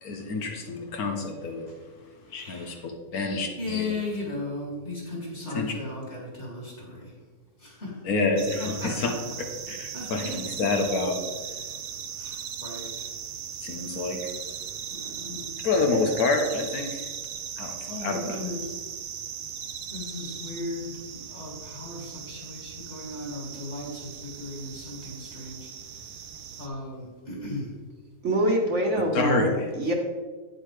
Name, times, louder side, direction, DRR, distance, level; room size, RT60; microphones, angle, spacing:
voice 1, 0.0-1.7 2.3-3.9 5.5-5.7 8.0-9.1 9.7-11.2 13.6-14.2 15.6-17.1 17.6-18.4 29.1-29.7, left 3 dB, 80° left, 1.5 m, -28 dB
voice 2, 2.3-2.7 3.6-7.1 7.6-8.0 8.6-9.1 9.9-10.4 12.2-12.9 14.9-15.5 17.9-18.7 19.9-25.7 26.6-27.7, left 2 dB, 50° left, 2.9 m, -36 dB
sound 1, 8.4-26.7, right 8 dB, 75° right, 1.1 m, -38 dB
voice 3, 28.2-29.9, right 1 dB, 55° right, 1.5 m, -25 dB
9.2 x 7.8 x 3.3 m
omnidirectional pair, 1.6 m